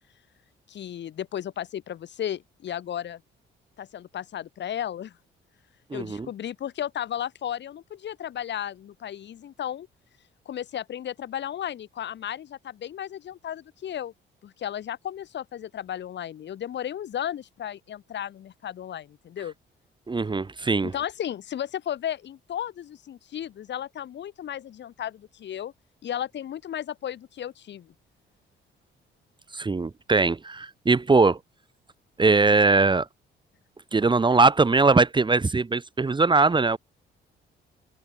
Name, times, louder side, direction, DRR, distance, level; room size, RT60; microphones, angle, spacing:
voice 1, 0.7-3.2 3.8-5.1 5.9-9.9 10.5-14.1 14.4-19.5 20.8-25.7 26.0-27.9, left 10 dB, 65° left, 2.1 m, -34 dB
voice 2, 5.9-6.3 20.1-20.9 29.5-31.4 32.2-33.1 33.9-36.8, right 3 dB, 25° right, 1.4 m, -21 dB
open air
cardioid pair, 90°, 20 cm